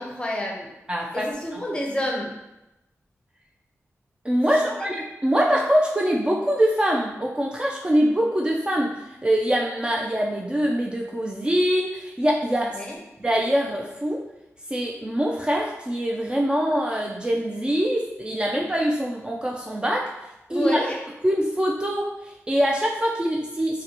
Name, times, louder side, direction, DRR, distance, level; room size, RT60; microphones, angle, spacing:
voice 1, 0.0-0.7 1.1-2.4 4.5-4.8 12.7-13.0 20.5-21.0, left 1 dB, 20° left, -1 dB, 0.7 m, -29 dB
voice 2, 0.9-1.2 4.2-8.9 9.2-12.8 13.2-14.2 14.7-20.1 20.5-20.9 21.2-23.8, equal, 20° right, -2 dB, 0.4 m, -23 dB
3.9 x 2.1 x 2.9 m, 0.93 s
wide cardioid pair, 70°, 5 cm